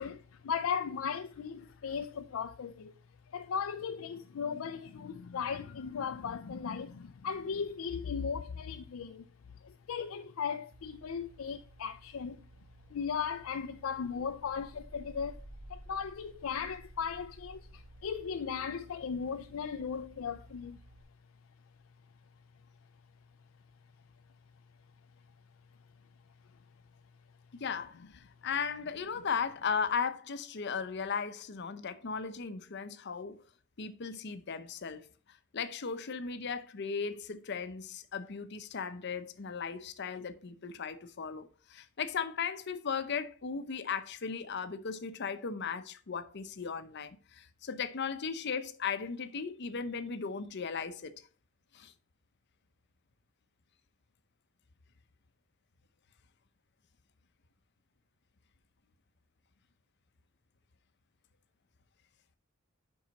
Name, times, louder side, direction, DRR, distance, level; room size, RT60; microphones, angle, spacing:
voice 1, 0.0-2.9 3.3-9.2 9.6-12.4 12.9-15.4 15.7-20.8, left 6 dB, 90° left, 0.4 m, -37 dB
sound 1, 10.7-21.0, right 1 dB, 90° right, 1.3 m, -55 dB
voice 2, 27.5-33.4 33.8-35.0 35.5-51.2 51.7-51.9, left 6 dB, 55° left, 0.7 m, -37 dB
7.5 x 5.5 x 4.0 m
head